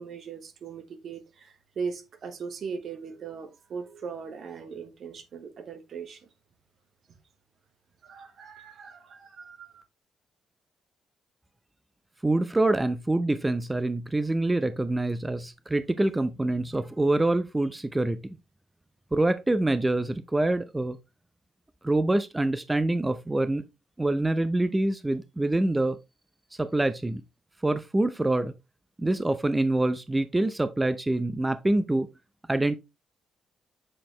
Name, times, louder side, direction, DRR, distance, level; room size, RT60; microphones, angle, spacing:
voice 1, 0.0-6.2 8.0-9.8, right 5 dB, 65° right, 1.3 m, -39 dB
voice 2, 12.2-18.2 19.1-21.0 21.8-23.6 24.0-26.0 26.6-27.2 27.6-28.5 29.0-32.1 32.5-32.8, right 2 dB, 20° right, 0.6 m, -25 dB
7.6 x 4.3 x 3.1 m
supercardioid pair, 50°, 0 cm